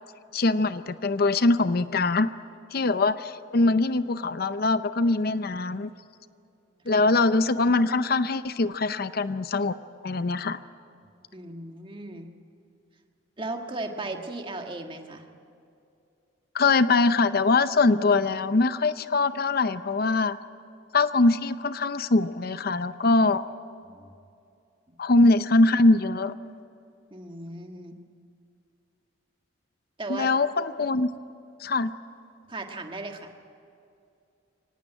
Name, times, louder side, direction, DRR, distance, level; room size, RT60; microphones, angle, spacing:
voice 1, 0.3-2.3 2.7-5.9 6.9-9.8 10.0-10.6 16.5-20.4 20.9-23.4 25.0-26.3 30.1-31.1 31.6-31.9, left 3 dB, 55° left, 13 dB, 0.6 m, -22 dB
voice 2, 11.3-12.3 13.4-15.2 23.8-24.2 27.1-28.0 30.0-30.3 32.5-33.3, right 2 dB, 25° right, 4 dB, 1.7 m, -36 dB
24.5 x 18.5 x 9.1 m, 2.6 s
head